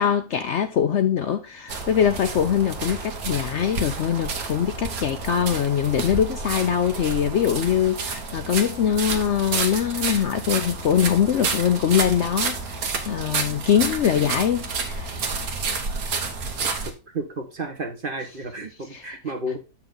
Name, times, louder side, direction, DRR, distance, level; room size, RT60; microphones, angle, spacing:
voice 1, 0.0-15.2 18.9-19.1, left 9 dB, 60° left, 0.8 m, -23 dB
sound 1, 1.7-16.9, right 4 dB, 75° right, 1.7 m, -30 dB
voice 2, 17.1-19.6, right 2 dB, 40° right, 1.3 m, -31 dB
7.5 x 5.9 x 3.8 m
omnidirectional pair, 1.6 m